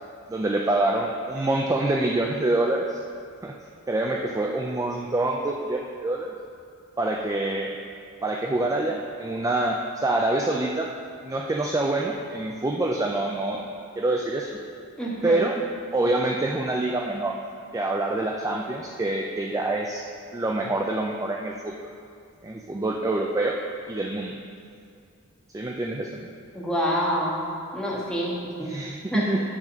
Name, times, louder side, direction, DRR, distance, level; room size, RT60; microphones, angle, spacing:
voice 1, 0.3-3.0 3.4-3.5 3.9-6.3 7.0-7.7 8.2-10.9 11.2-13.6 14.0-14.6 15.2-15.6 15.9-17.4 17.7-20.1 20.3-21.7 22.4-23.6 23.9-24.4 25.5-26.3 28.6-29.4, right 2 dB, 15° right, 0 dB, 0.3 m, -26 dB
voice 2, 15.0-15.4 26.5-27.4 27.7-28.7 29.1-29.2, equal, 5° left, -6 dB, 1.4 m, -27 dB
8.9 x 4.1 x 5.9 m, 2.4 s
head